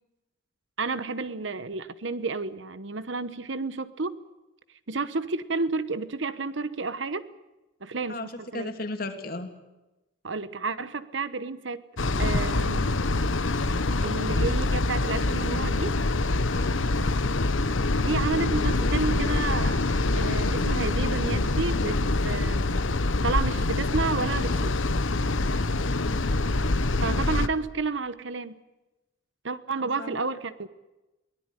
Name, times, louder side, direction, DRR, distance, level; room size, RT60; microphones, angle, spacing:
voice 1, 0.8-4.2 4.9-7.3 7.8-8.7 10.2-11.8 12.2-12.9 14.0-16.0 18.0-22.7 23.2-24.8 27.0-28.6 29.4-30.7, right 4 dB, 70° right, 14 dB, 1.1 m, -31 dB
voice 2, 8.5-9.5 16.5-16.8 25.9-26.3 30.0-30.2, left 2 dB, 50° left, 6 dB, 2.9 m, -35 dB
sound 1, 12.0-27.5, left 2 dB, 85° left, 1.2 m, -25 dB
23.5 x 18.5 x 10.0 m, 1.0 s
head